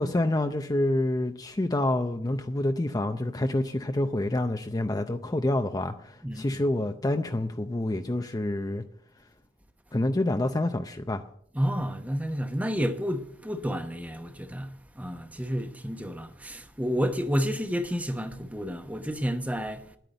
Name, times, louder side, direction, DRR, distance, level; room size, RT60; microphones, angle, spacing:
voice 1, 0.0-8.8 9.9-11.2, left 1 dB, 20° left, 0.5 m, -27 dB
voice 2, 6.2-6.6 11.5-20.0, equal, 10° right, 0.9 m, -30 dB
10.5 x 9.2 x 7.9 m
head